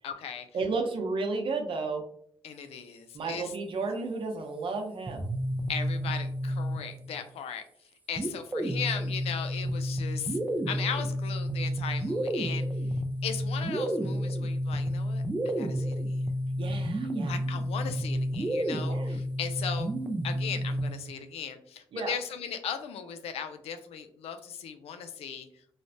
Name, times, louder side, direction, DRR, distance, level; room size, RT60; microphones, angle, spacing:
voice 1, 0.0-0.5 2.4-3.5 5.7-7.6 8.1-10.4 10.7-12.7 13.2-15.2 15.6-16.2 17.2-19.9 20.2-25.5, left 7 dB, 85° left, 8 dB, 0.4 m, -37 dB
voice 2, 0.5-2.0 3.1-5.3 16.6-17.4 18.8-19.2 21.9-22.2, right 3 dB, 60° right, 3 dB, 0.6 m, -33 dB
sound 1, 5.1-7.2 8.2-21.1, equal, 15° right, 0.4 m, -31 dB
3.1 x 2.0 x 2.6 m, 0.62 s
cardioid pair, 85°, 10 cm